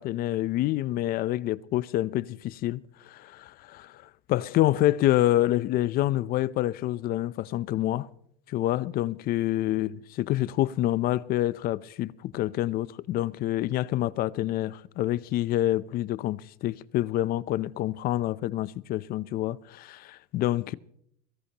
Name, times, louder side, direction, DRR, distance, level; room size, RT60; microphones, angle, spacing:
voice 1, 0.0-4.0 4.3-8.1 8.5-20.7, left 14 dB, 50° left, 0.7 m, -27 dB
22.5 x 18.5 x 3.0 m
cardioid pair, 135°, 20 cm